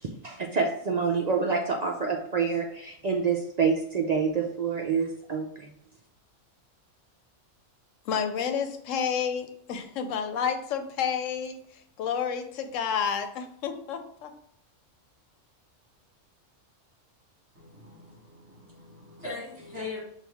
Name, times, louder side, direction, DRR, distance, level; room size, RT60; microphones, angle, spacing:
voice 1, 0.0-5.7, right 5 dB, 70° right, 1 dB, 0.4 m, -27 dB
voice 2, 8.1-11.6 12.0-14.3, left 7 dB, 80° left, 8 dB, 1.0 m, -30 dB
voice 3, 17.5-20.1, left 3 dB, 25° right, -7 dB, 1.6 m, -40 dB
6.1 x 2.4 x 3.4 m, 0.67 s
omnidirectional pair, 1.3 m